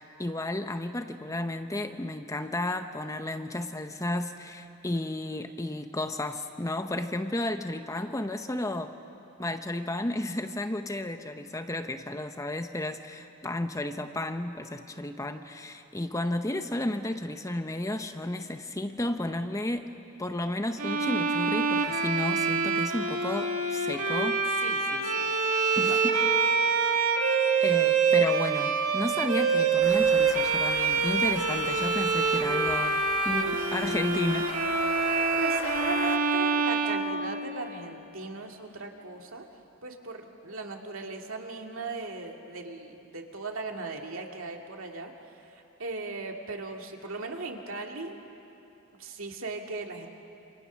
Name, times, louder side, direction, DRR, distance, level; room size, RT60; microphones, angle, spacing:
voice 1, 0.2-8.9 9.4-19.9 20.2-24.8 25.8-26.7 27.6-34.5, left 1 dB, 15° left, 8 dB, 0.7 m, -33 dB
Bowed string instrument, 20.8-37.8, right 5 dB, 90° right, 2.0 m, -26 dB
voice 2, 24.6-25.3 25.8-26.0 35.4-39.5 39.8-45.1 45.5-48.2 49.0-50.1, right 3 dB, 65° right, 2 dB, 2.3 m, -38 dB
sound 1, 29.8-36.2, left 4 dB, 55° left, 1.5 m, -40 dB
28.0 x 27.0 x 6.3 m, 2.9 s
head